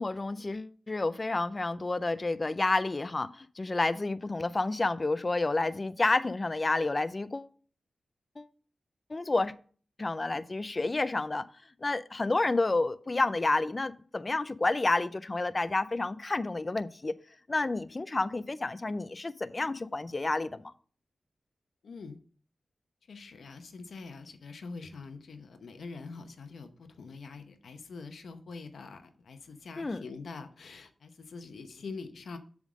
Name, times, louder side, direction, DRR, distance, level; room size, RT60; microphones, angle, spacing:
voice 1, 0.0-7.5 8.4-8.5 9.1-9.5 10.0-11.5 11.8-17.1 17.5-20.6 29.8-30.0, left 2 dB, 35° left, 0.4 m, -30 dB
voice 2, 21.8-22.2 23.1-32.4, left 4 dB, 85° left, 0.8 m, -44 dB
7.3 x 3.6 x 6.1 m
cardioid pair, 60°, 0 cm